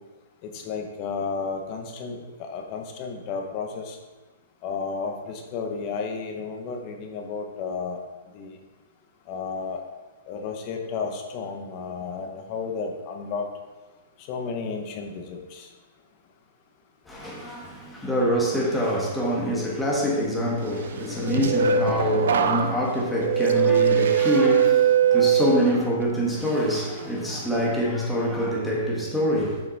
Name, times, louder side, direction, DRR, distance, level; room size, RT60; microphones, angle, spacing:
voice 1, 0.4-4.0 4.6-8.0 8.3-8.5 9.3-9.8 10.3-13.5 14.3-15.7, left 5 dB, 35° left, 3 dB, 1.1 m, -32 dB
voice 2, 17.1-29.6, equal, 5° left, -4 dB, 1.7 m, -25 dB
sound 1, 21.0-26.0 26.4-26.8, right 8 dB, 75° right, 0.6 m, -22 dB
7.2 x 5.8 x 4.1 m, 1.2 s
hypercardioid pair, 155°, 0 cm